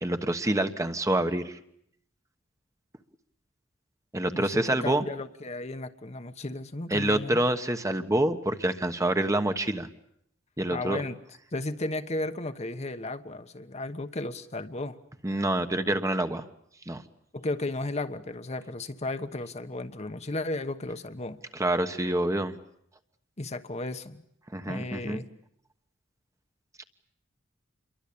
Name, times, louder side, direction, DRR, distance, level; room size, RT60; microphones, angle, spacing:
voice 1, 0.0-1.6 4.1-5.0 6.9-9.9 10.6-11.0 15.2-16.4 16.9-17.0 21.5-22.6 24.5-25.2 26.8-26.9, right 1 dB, 15° right, 8 dB, 1.2 m, -27 dB
voice 2, 4.3-7.4 10.7-11.2 11.5-15.0 17.3-21.4 23.4-24.2 24.7-25.2, left 2 dB, 35° left, 8 dB, 1.1 m, -34 dB
28.0 x 23.0 x 8.6 m, 0.73 s
head